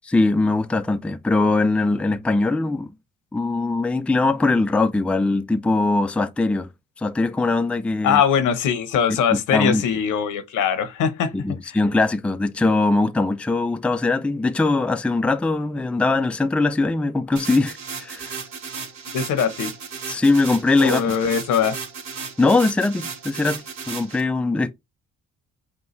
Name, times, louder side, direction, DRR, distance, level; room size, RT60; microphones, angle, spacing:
voice 1, 0.1-2.9 3.3-6.7 7.0-8.2 9.3-9.8 11.3-18.4 20.1-21.2 22.4-24.7, left 3 dB, 5° left, 0.4 m, -21 dB
voice 2, 8.0-11.8 19.1-19.7 20.8-21.8, left 7 dB, 85° left, 0.9 m, -22 dB
sound 1, 17.4-24.2, right 5 dB, 65° right, 1.5 m, -35 dB
5.3 x 2.3 x 3.1 m
cardioid pair, 90°, 30 cm